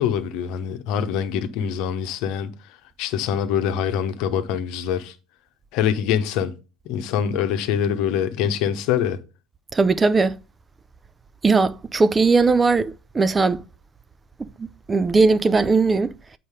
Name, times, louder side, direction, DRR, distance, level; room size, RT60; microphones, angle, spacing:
voice 1, 0.0-2.5 3.0-5.1 5.7-6.5 6.8-9.2, left 8 dB, 60° left, 1.0 m, -24 dB
voice 2, 9.7-10.4 11.4-13.6 14.4-16.1, right 4 dB, 20° right, 0.5 m, -19 dB
8.1 x 4.2 x 4.9 m
hypercardioid pair, 70°, 0 cm